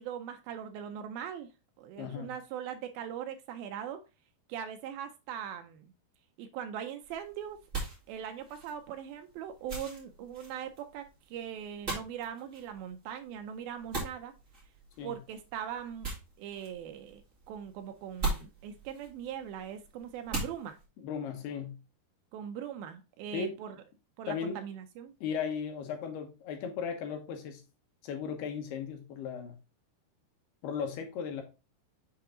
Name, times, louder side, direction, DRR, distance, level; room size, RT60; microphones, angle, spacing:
voice 1, 0.0-1.5 1.8-4.0 4.5-5.9 6.4-7.6 8.1-14.3 15.0-16.1 16.4-17.2 17.5-20.8 22.3-23.8 24.2-25.1, right 9 dB, 80° right, 2.1 m, -40 dB
voice 2, 2.0-2.3 15.0-15.2 21.0-21.8 23.3-23.5 24.3-24.6 25.2-27.6 28.0-29.5 30.6-31.4, left 6 dB, 75° left, 2.9 m, -36 dB
sound 1, 7.0-20.8, right 3 dB, 20° right, 2.6 m, -42 dB
6.9 x 4.5 x 3.7 m
omnidirectional pair, 4.9 m